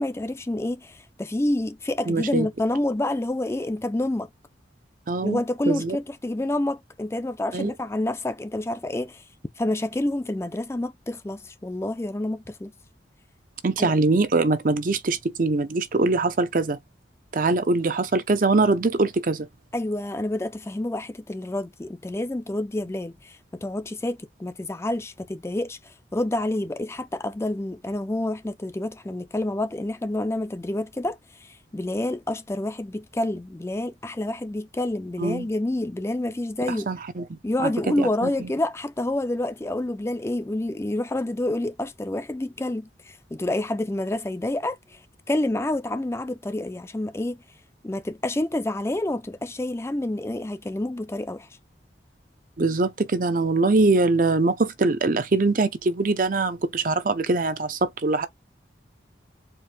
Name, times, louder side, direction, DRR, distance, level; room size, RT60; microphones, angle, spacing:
voice 1, 0.0-4.3 5.2-9.2 9.6-12.7 13.8-13.9 19.7-36.9 37.4-45.0 45.3-47.4 47.8-51.5, left 1 dB, 15° left, 0.4 m, -28 dB
voice 2, 2.1-2.5 5.1-5.4 5.7-6.0 7.5-7.7 13.6-16.8 17.3-19.5 35.2-35.5 36.9-37.2 37.6-38.5 52.6-58.3, right 3 dB, 45° right, 0.6 m, -23 dB
4.6 x 2.5 x 3.3 m
head